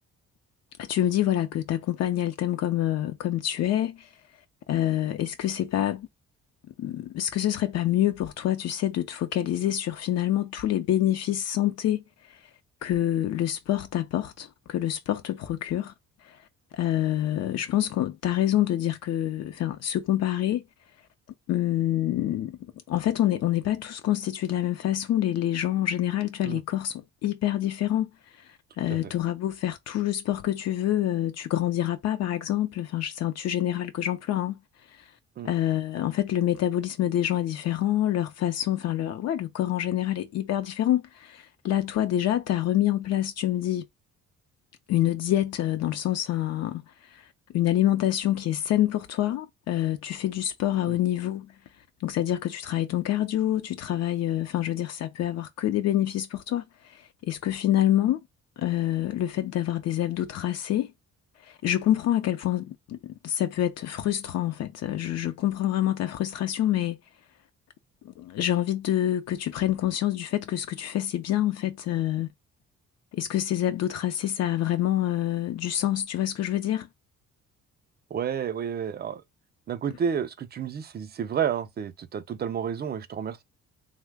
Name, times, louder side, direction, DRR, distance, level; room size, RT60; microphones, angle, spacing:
voice 1, 0.8-4.1 4.7-6.1 6.8-12.0 12.3-12.4 12.8-15.9 16.2-16.4 16.7-20.6 21.5-22.6 22.9-28.1 28.4-28.5 28.8-34.6 35.4-43.8 44.9-46.8 47.1-47.2 47.5-51.5 52.0-58.2 58.6-60.9 61.4-67.0 68.0-72.3 73.1-76.9, left 12 dB, 60° left, 0.5 m, -26 dB
voice 2, 78.1-79.2 79.7-83.4, right 8 dB, 35° right, 0.4 m, -30 dB
3.2 x 2.0 x 3.4 m
cardioid pair, 130°, 29 cm